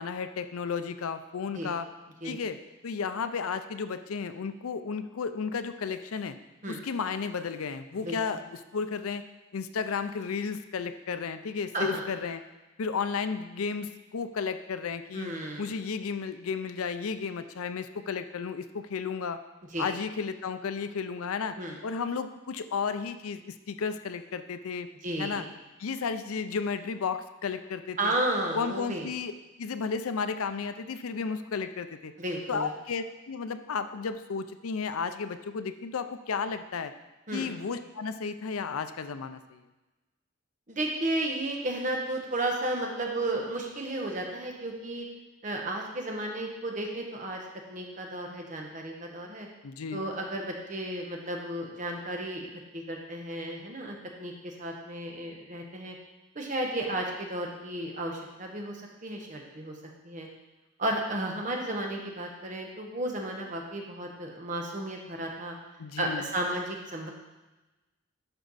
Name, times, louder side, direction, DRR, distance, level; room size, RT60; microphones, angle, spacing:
voice 1, 0.0-1.9 2.2-2.6 2.8-6.4 6.7-9.2 9.5-12.4 12.8-15.3 15.6-19.4 19.8-21.6 21.8-24.9 25.2-25.4 25.8-28.1 28.5-29.3 29.6-32.1 32.5-36.9 37.3-39.6 49.6-50.1 65.8-66.3, left 5 dB, 85° left, 10 dB, 0.5 m, -33 dB
voice 2, 15.1-15.7 19.7-19.9 21.6-21.8 25.0-25.5 28.0-29.0 32.2-32.7 37.3-37.5 40.7-45.1 45.4-47.4 47.7-49.5 49.9-52.5 52.7-55.9 56.3-59.7 60.0-60.3 60.8-65.6 66.0-67.1, right 1 dB, 35° right, 1 dB, 1.1 m, -33 dB
11.5 x 4.5 x 4.1 m, 1.1 s
head